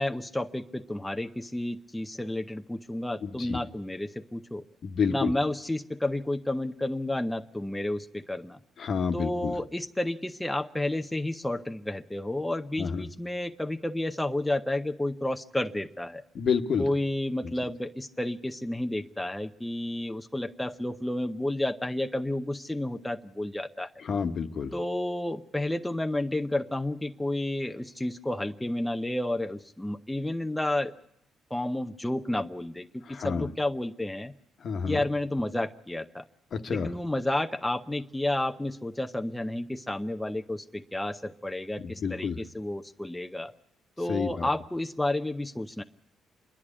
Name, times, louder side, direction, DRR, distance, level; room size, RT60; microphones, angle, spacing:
voice 1, 0.0-4.6 5.1-8.6 9.1-16.2 16.8-23.9 24.7-30.9 31.5-34.3 34.9-36.2 36.7-43.5 44.0-45.8, left 1 dB, 5° left, 6 dB, 0.7 m, -31 dB
voice 2, 3.2-3.6 4.8-5.3 8.8-9.6 12.8-13.0 16.3-16.8 17.4-17.5 24.0-24.7 33.1-33.5 34.6-35.0 36.5-36.9 41.8-42.4 44.1-44.5, left 6 dB, 55° left, 7 dB, 1.2 m, -29 dB
26.5 x 11.0 x 9.9 m, 0.76 s
cardioid pair, 90°, 0 cm